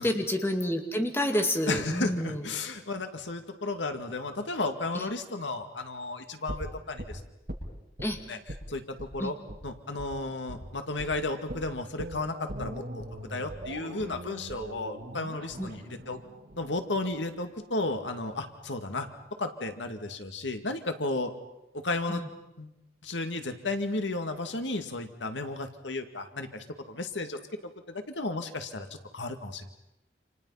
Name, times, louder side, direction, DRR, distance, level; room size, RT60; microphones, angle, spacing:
voice 1, 0.0-2.4 4.9-5.1 8.0-8.2 9.2-9.3 15.6-15.7 22.1-22.3, left 1 dB, 15° left, 4 dB, 2.4 m, -29 dB
voice 2, 1.7-7.2 8.3-8.4 8.7-9.3 9.6-13.0 13.3-16.2 16.6-19.1 19.4-21.3 21.7-22.2 22.6-22.7 23.0-28.9 29.1-29.7, left 2 dB, 85° left, 7 dB, 2.2 m, -33 dB
sound 1, 6.5-8.1 8.5-8.7 9.0-9.1 9.5-9.6 10.0-10.1 10.5-10.7 11.0-11.1 11.5-17.5 17.8-17.9, right 1 dB, 55° right, 8.0 m, -41 dB
29.5 x 27.5 x 5.8 m, 0.89 s
head